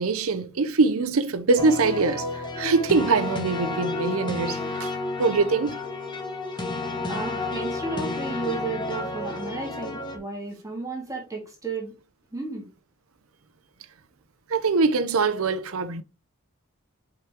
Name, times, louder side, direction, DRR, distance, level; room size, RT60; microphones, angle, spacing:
voice 1, 0.0-2.3 2.6-4.9 5.2-5.8 14.5-16.0, right 4 dB, 75° right, 0.6 m, -23 dB
sound 1, 1.6-10.2, left 2 dB, 20° left, 1.4 m, -31 dB
sound 2, 2.5-8.9, left 2 dB, 35° right, 0.8 m, -41 dB
voice 2, 7.1-11.9 12.3-12.7, right 3 dB, 15° right, 2.0 m, -33 dB
5.5 x 5.0 x 3.6 m
head